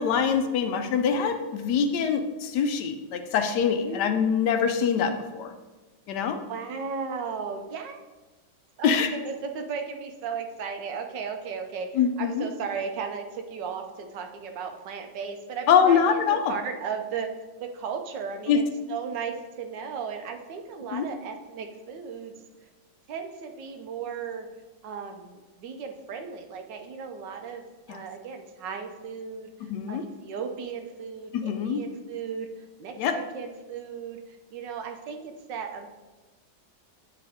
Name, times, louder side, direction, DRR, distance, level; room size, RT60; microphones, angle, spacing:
voice 1, 0.0-5.5 6.1-6.4 8.8-9.1 11.9-12.5 15.7-16.5 18.5-18.6 20.9-21.1 27.9-28.0 29.7-30.0 31.3-31.8 33.0-33.1, left 7 dB, 75° left, 7 dB, 1.2 m, -24 dB
voice 2, 3.8-4.1 6.5-8.0 8.8-17.3 17.6-18.6 18.9-22.3 23.1-24.5 24.8-29.5 29.9-32.5 32.8-35.9, right 6 dB, 80° right, 5 dB, 1.4 m, -35 dB
9.2 x 4.7 x 3.5 m, 1.2 s
omnidirectional pair, 1.9 m